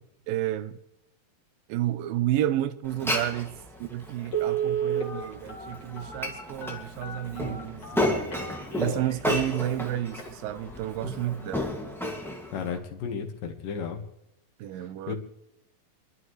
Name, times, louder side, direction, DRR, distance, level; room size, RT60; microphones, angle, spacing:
voice 1, 0.3-0.8 1.7-8.2 8.8-11.8 14.6-15.1, right 13 dB, 85° right, 2.4 m, -31 dB
Glass, 2.8-12.8, left 1 dB, ahead, 0.8 m, -33 dB
Telephone, 3.5-3.6 4.3-9.1 9.7-9.8 10.1-10.3 10.7-11.0 11.3-11.4, right 7 dB, 50° left, 3.2 m, -32 dB
voice 2, 12.5-14.0 15.1-15.2, left 6 dB, 70° left, 3.1 m, -33 dB
29.0 x 11.5 x 3.2 m
omnidirectional pair, 4.0 m